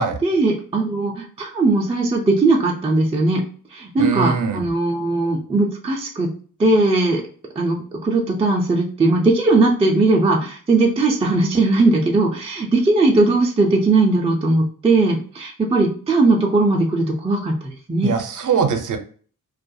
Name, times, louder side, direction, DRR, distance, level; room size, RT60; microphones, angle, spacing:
voice 1, 0.2-3.4 3.7-6.3 6.6-7.2 7.6-18.1, right 2 dB, 20° right, -1 dB, 0.4 m, -18 dB
voice 2, 4.0-4.7 18.0-19.0, right 5 dB, 65° right, 6 dB, 0.6 m, -21 dB
2.3 x 2.2 x 2.6 m, 0.43 s
wide cardioid pair, 145°, 34 cm